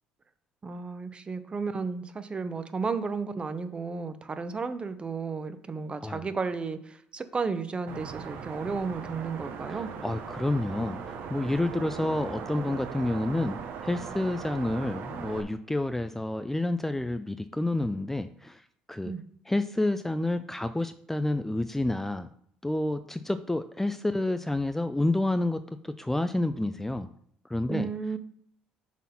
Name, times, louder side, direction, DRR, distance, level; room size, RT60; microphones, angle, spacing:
voice 1, 0.6-9.9 19.0-19.2 27.7-28.2, right 4 dB, 30° right, 11 dB, 0.8 m, -33 dB
sound 1, 7.9-15.4, right 6 dB, 65° right, 1.0 m, -39 dB
voice 2, 9.7-18.6 18.9-19.1 19.5-22.3 22.6-27.1 27.5-27.9, left 2 dB, 10° left, 10 dB, 0.4 m, -29 dB
6.2 x 4.2 x 5.6 m, 0.67 s
hypercardioid pair, 70°, 4 cm